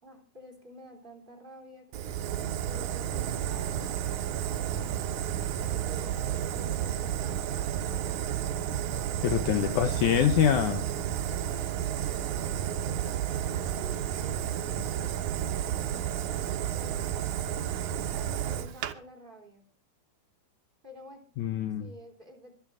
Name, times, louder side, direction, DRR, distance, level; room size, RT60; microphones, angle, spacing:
voice 1, 0.0-2.2 2.6-5.1 5.7-8.7 9.5-9.8 11.4-17.3 18.1-19.6 20.8-21.3 21.8-22.5, equal, 15° right, 3 dB, 3.3 m, -50 dB
Fire, 1.9-18.9, right 10 dB, 70° right, 1.9 m, -31 dB
voice 2, 9.2-10.9 21.4-21.9, left 10 dB, 85° left, 9 dB, 1.7 m, -25 dB
25.5 x 8.7 x 3.7 m, 0.38 s
omnidirectional pair, 4.6 m